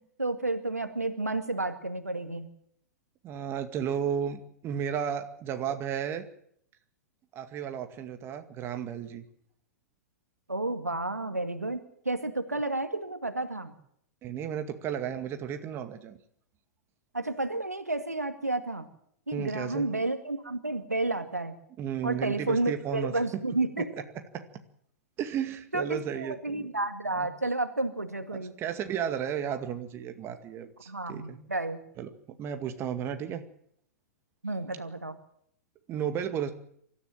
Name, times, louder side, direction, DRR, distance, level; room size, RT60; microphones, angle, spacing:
voice 1, 0.2-2.5 10.5-11.8 12.0-13.7 17.1-18.9 19.3-21.6 22.0-23.9 25.7-28.5 30.9-31.8 34.4-35.2, right 2 dB, 85° right, 9 dB, 2.2 m, -31 dB
voice 2, 3.2-6.3 7.3-9.2 14.2-16.2 19.3-19.9 21.8-23.2 24.3-24.5 25.2-26.7 27.2-27.3 28.6-31.4 32.0-32.1 32.4-33.4 35.9-36.5, right 8 dB, 30° right, 7 dB, 2.2 m, -33 dB
24.5 x 14.0 x 7.5 m, 0.68 s
figure-of-eight pair, 105°, 8 cm